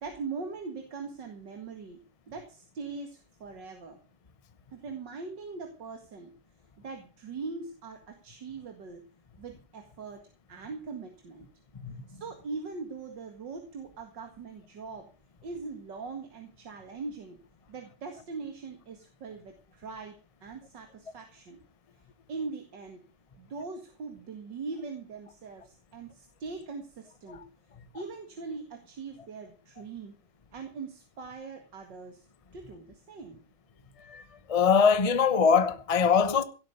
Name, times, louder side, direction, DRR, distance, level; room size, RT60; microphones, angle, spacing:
voice 1, 0.0-2.0 2.3-4.0 4.7-6.3 6.8-9.0 9.4-10.2 10.5-11.5 12.1-15.1 15.4-17.4 17.7-21.6 22.3-23.0 23.4-27.5 27.9-30.2 30.5-32.2 32.5-33.4, right 4 dB, 55° right, 2.5 m, -41 dB
voice 2, 34.5-36.4, left 6 dB, 40° left, 0.5 m, -22 dB
17.0 x 8.5 x 6.7 m
omnidirectional pair, 2.4 m